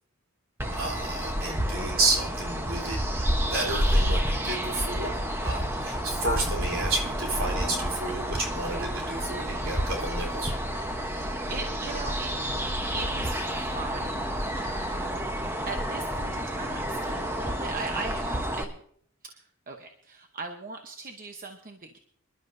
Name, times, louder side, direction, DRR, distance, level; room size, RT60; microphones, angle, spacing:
sound 1, 0.6-18.6, equal, 10° right, 1.0 m, -30 dB
voice 1, 0.7-10.5, right 2 dB, 60° right, 0 dB, 3.9 m, -31 dB
voice 2, 11.1-12.3 12.9-14.3 14.5-15.2 15.7-18.8 19.2-22.0, right 3 dB, 40° right, 4 dB, 0.9 m, -39 dB
25.5 x 12.0 x 2.7 m, 0.63 s
head